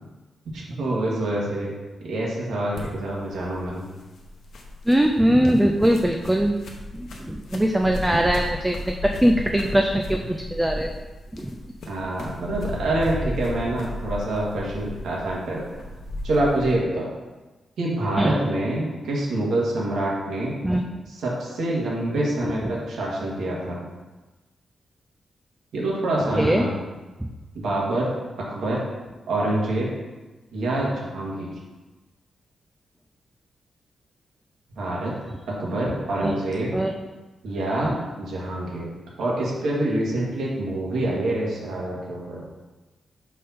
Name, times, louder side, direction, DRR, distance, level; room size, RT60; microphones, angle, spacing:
voice 1, 0.5-1.7 2.0-3.9 11.9-15.6 16.2-17.1 17.8-20.5 21.1-23.9 25.7-26.8 27.5-28.1 28.4-28.8 29.3-29.9 30.5-31.5 34.7-35.1 35.5-36.7 37.4-38.9 39.2-42.5, right 1 dB, 75° right, -4 dB, 1.9 m, -26 dB
sound 1, 2.7-16.8, left 1 dB, 60° left, 0.9 m, -35 dB
voice 2, 4.9-6.5 6.9-10.9 11.3-11.6 18.2-18.4 20.6-21.0 26.3-26.7 27.2-27.3 36.2-36.4 36.7-36.9 37.9-38.0, equal, 5° right, 2 dB, 0.3 m, -21 dB
5.5 x 5.0 x 4.2 m, 1.2 s
wide cardioid pair, 170°, 0 cm